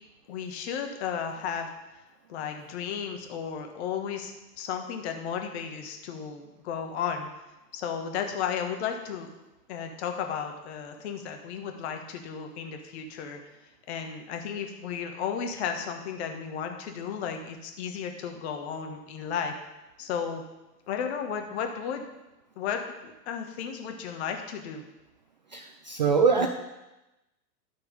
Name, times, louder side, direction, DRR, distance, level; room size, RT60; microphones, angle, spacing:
voice 1, 0.3-1.7 2.3-7.3 7.7-9.3 9.7-13.4 13.9-19.5 20.0-20.4 20.9-22.0 22.6-24.8 26.4-26.5, left 7 dB, 40° left, 5 dB, 1.4 m, -34 dB
voice 2, 25.5-26.5, right 5 dB, 30° right, 5 dB, 0.4 m, -23 dB
11.0 x 6.1 x 5.2 m, 0.99 s
figure-of-eight pair, 105°, 49 cm